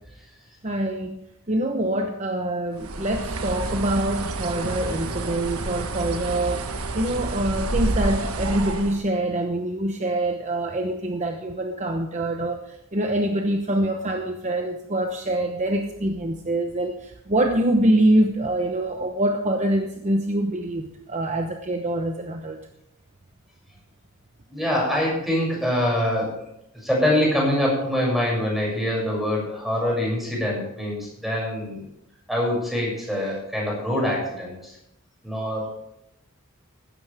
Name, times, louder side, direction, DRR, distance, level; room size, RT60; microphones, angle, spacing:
voice 1, 0.6-1.2 1.5-6.7 6.9-22.6, right 1 dB, 35° right, 4 dB, 0.9 m, -25 dB
Bird, 2.8-9.0, right 2 dB, 80° right, 1.4 m, -29 dB
voice 2, 24.5-26.3 26.8-31.8 32.3-34.7 35.2-35.8, left 1 dB, ahead, -3 dB, 6.9 m, -24 dB
16.0 x 13.5 x 3.5 m, 0.81 s
head